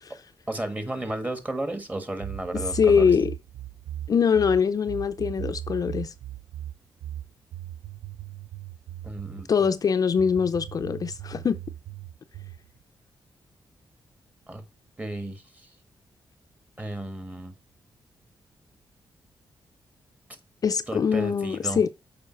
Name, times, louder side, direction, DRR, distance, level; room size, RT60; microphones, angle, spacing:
voice 1, 0.5-3.0 9.0-9.5 14.5-14.6 15.0-15.7 16.8-17.5 20.9-21.8, right 2 dB, 20° right, 1.6 m, -33 dB
sound 1, 2.2-9.5 10.2-12.7, right 12 dB, 80° right, 0.4 m, -37 dB
voice 2, 2.5-3.3 4.1-6.1 9.5-11.6 20.6-21.9, left 6 dB, 45° left, 0.5 m, -23 dB
7.0 x 5.0 x 4.5 m
cardioid pair, 100°, 8 cm